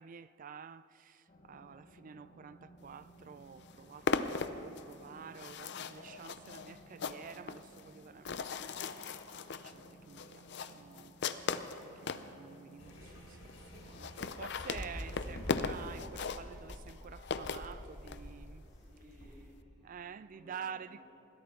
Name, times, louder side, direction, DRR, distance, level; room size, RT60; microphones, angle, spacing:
voice 1, 0.0-9.1 9.5-18.6 19.8-21.0, right 7 dB, 40° right, 0.4 m, -50 dB
sound 1, 1.3-14.0, right 1 dB, 40° left, 1.3 m, -59 dB
sound 2, 3.1-3.2 3.4-12.3 12.9-13.0 13.2-13.3 13.5-13.6 13.8-18.2, left 5 dB, 60° left, 0.6 m, -38 dB
sound 3, 12.8-19.3, equal, 85° left, 3.3 m, -47 dB
voice 2, 18.7-19.9 20.2-21.0, equal, ahead, 2.7 m, -59 dB
21.0 x 16.0 x 3.8 m
head